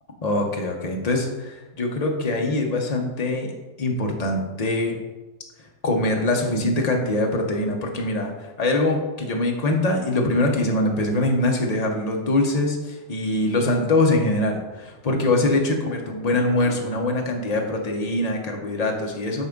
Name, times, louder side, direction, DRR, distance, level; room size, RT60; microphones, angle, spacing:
voice 1, 0.2-3.5 3.8-5.0 5.8-19.5, left 2 dB, 35° left, 1 dB, 0.6 m, -23 dB
8.5 x 3.5 x 5.2 m, 1.1 s
omnidirectional pair, 1.9 m